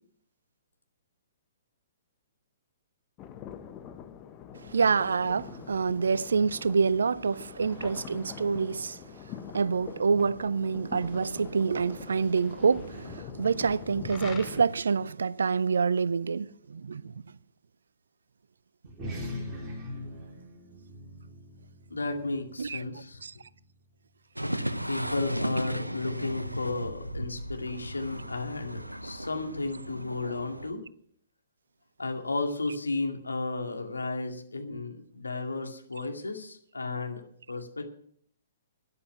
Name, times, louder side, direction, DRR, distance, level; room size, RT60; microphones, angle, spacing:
sound 1, 3.2-14.7, left 9 dB, 25° left, 1.0 m, -44 dB
voice 1, 4.7-9.0 9.5-17.1 22.6-22.8 23.2-23.3, right 5 dB, 65° right, 0.5 m, -27 dB
sound 2, 18.9-23.7, left 1 dB, 15° right, 4.9 m, -41 dB
voice 2, 21.9-23.2 24.9-30.8 32.0-37.2 37.5-37.8, left 3 dB, 75° left, 2.2 m, -33 dB
sound 3, 24.4-30.7, equal, 85° right, 0.8 m, -35 dB
12.5 x 9.9 x 6.0 m
figure-of-eight pair, 120°, 0 cm